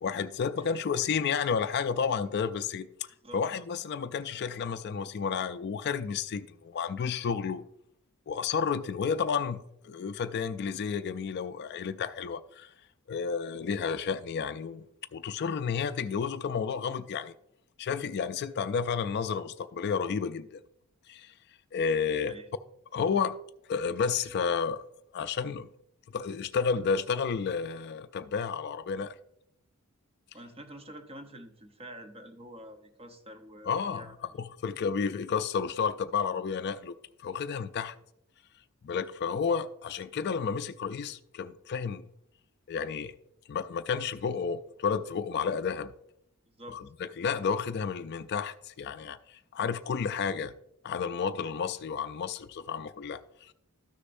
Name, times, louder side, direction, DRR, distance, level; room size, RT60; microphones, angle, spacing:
voice 1, 0.0-2.9 3.3-7.6 8.3-12.7 13.1-14.9 15.1-17.3 17.8-20.5 21.1-21.3 21.7-22.3 22.9-23.4 23.7-24.8 25.1-25.7 26.1-29.1 33.7-34.0 34.4-36.9 37.2-37.9 38.8-42.1 42.7-43.1 43.5-45.9 46.7-46.8 47.2-50.5 50.8-53.5, left 6 dB, 50° left, 0.4 m, -31 dB
voice 2, 22.1-22.5 30.3-34.3 46.6-46.8, right 1 dB, 25° right, 0.9 m, -47 dB
13.0 x 6.5 x 2.6 m
head